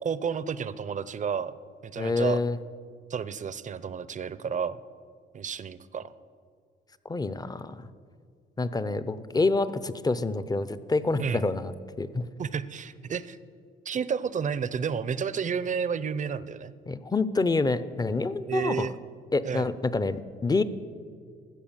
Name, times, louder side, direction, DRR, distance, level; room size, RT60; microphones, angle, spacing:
voice 1, 0.0-1.5 1.8-2.4 3.1-4.8 5.3-6.1 11.2-11.4 12.4-13.4 13.9-16.7 18.5-18.9 19.4-19.7, right 6 dB, 40° right, 16 dB, 0.6 m, -31 dB
voice 2, 2.0-2.6 7.0-7.8 8.6-12.3 16.9-18.9 19.3-20.6, left 3 dB, 20° left, 14 dB, 0.6 m, -27 dB
15.0 x 6.8 x 7.3 m, 2.2 s
cardioid pair, 90°, 20 cm